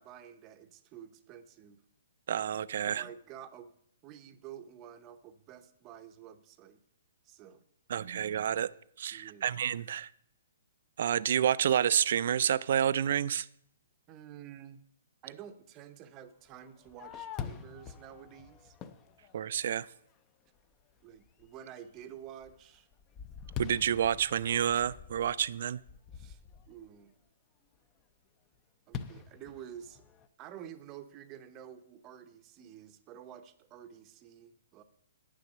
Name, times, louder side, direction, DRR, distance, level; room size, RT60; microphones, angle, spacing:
voice 1, 0.0-1.8 2.9-3.7 4.0-6.8 7.2-7.6 9.1-9.6 14.1-14.8 15.2-18.8 21.0-22.9 26.1-26.4 26.7-27.1 28.9-30.1 30.4-34.8, right 9 dB, 25° right, 10 dB, 0.7 m, -50 dB
voice 2, 2.3-3.0 7.9-8.7 9.0-10.1 11.0-13.5 19.3-19.9 23.6-25.8, right 9 dB, 55° right, 18 dB, 0.3 m, -29 dB
Fireworks, 16.5-20.0 20.6-20.7 21.2-21.6 22.0-26.9 28.9-30.3, left 7 dB, 20° left, 0.5 m, -45 dB
9.0 x 6.7 x 6.5 m, 0.69 s
hypercardioid pair, 155°, 0 cm